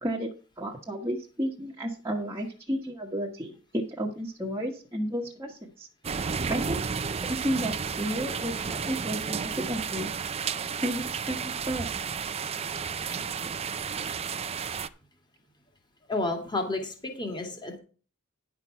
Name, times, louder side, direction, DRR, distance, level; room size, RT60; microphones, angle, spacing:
voice 1, 0.6-5.9 6.5-6.8 7.2-10.1 10.8-11.9 13.1-13.3, equal, 15° right, -4 dB, 1.3 m, -32 dB
sound 1, 6.0-14.9, right 6 dB, 30° right, 0.5 m, -32 dB
voice 2, 16.1-17.8, left 2 dB, 20° left, 3 dB, 2.2 m, -31 dB
10.5 x 6.0 x 5.6 m, 0.37 s
head